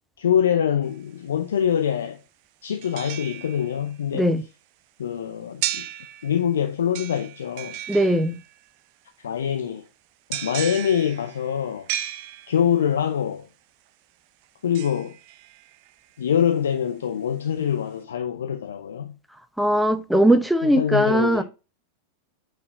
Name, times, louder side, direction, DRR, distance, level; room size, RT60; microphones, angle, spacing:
voice 1, 0.2-2.2 2.6-4.3 5.0-5.9 6.2-7.8 9.2-9.8 10.3-11.9 12.5-13.5 14.6-15.2 16.2-19.2 20.6-21.4, left 9 dB, 65° left, 0.6 m, -24 dB
sound 1, 0.8-0.9 2.8-4.0 5.6-6.6 6.9-8.7 10.3-12.8 14.7-15.9 16.4-16.5, right 13 dB, 45° right, 0.5 m, -34 dB
voice 2, 7.9-8.4 19.6-21.4, right 1 dB, ahead, 0.8 m, -19 dB
8.7 x 4.1 x 2.6 m
figure-of-eight pair, 90°, 0 cm